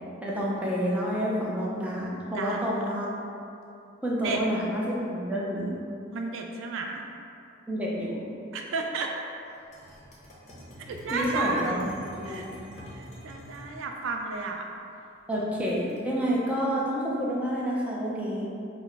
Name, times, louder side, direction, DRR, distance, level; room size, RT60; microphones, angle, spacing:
voice 1, 0.2-3.1 4.0-5.8 7.7-8.2 11.1-11.9 12.2-12.5 15.3-18.5, equal, 5° right, -5 dB, 0.5 m, -29 dB
voice 2, 2.3-2.7 4.2-4.4 6.1-7.0 8.5-9.1 10.8-11.8 12.2-12.5 12.9-14.7, right 4 dB, 65° right, 2 dB, 0.3 m, -32 dB
sound 1, 9.5-13.7 15.3-16.1, equal, 35° left, 0.8 m, -46 dB
4.0 x 2.1 x 4.5 m, 2.6 s
head